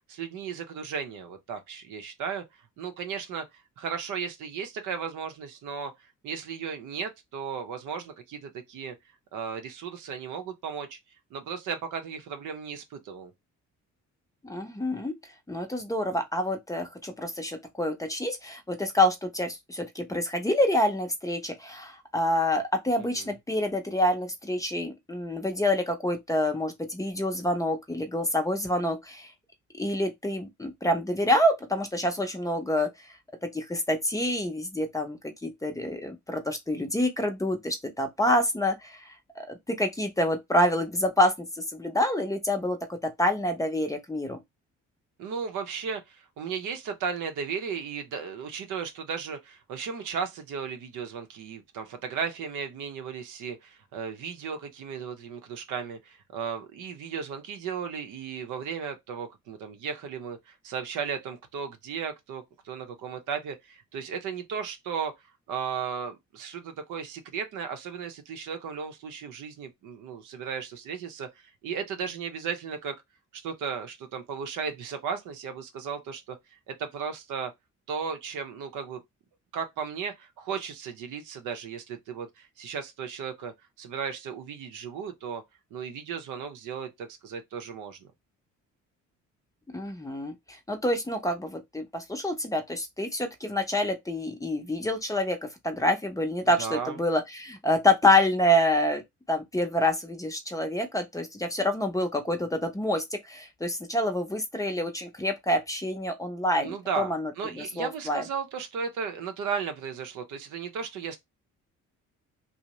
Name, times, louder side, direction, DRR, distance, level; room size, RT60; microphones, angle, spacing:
voice 1, 0.1-2.4 2.8-3.5 3.8-5.9 6.2-8.9 9.3-11.0 11.3-13.3 23.1-23.3 45.2-65.1 65.5-72.9 73.3-77.5 77.9-79.0 79.5-85.4 85.7-88.1 96.6-97.0 106.6-111.2, right 6 dB, 85° right, 0.7 m, -35 dB
voice 2, 14.4-15.1 15.5-29.3 29.8-32.9 33.5-41.5 41.7-44.4 89.7-95.4 95.6-99.0 99.3-108.2, left 1 dB, 10° left, 0.5 m, -27 dB
2.7 x 2.0 x 2.9 m
cardioid pair, 90°, 30 cm